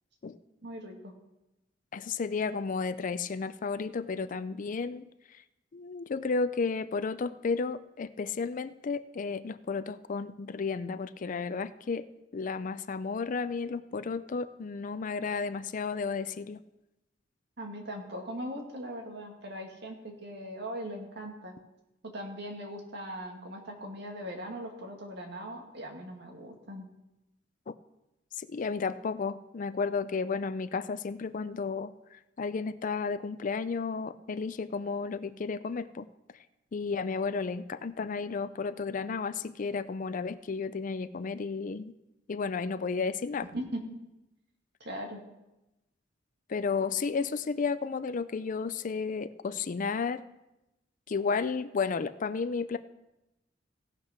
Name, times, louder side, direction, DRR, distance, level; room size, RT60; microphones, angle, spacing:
voice 1, 0.6-1.1 17.6-21.5 22.1-26.8 43.5-43.8 44.8-45.2, equal, 60° right, 2 dB, 2.1 m, -40 dB
voice 2, 1.9-5.0 5.7-12.1 12.3-16.6 28.4-36.1 36.7-41.9 42.3-43.5 46.5-50.2 51.1-52.8, left 5 dB, 45° left, 14 dB, 0.4 m, -33 dB
16.5 x 5.9 x 5.8 m, 0.94 s
head